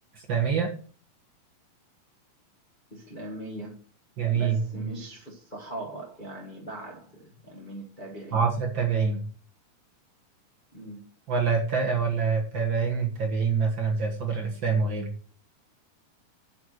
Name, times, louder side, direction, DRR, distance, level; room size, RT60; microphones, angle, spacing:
voice 1, 0.3-0.7 4.2-4.6 8.3-9.2 11.3-15.1, right 5 dB, 55° right, 1.3 m, -25 dB
voice 2, 2.9-3.8 4.3-8.4 10.7-11.1, right 1 dB, 80° left, 0.4 m, -40 dB
9.6 x 4.6 x 5.9 m
omnidirectional pair, 4.1 m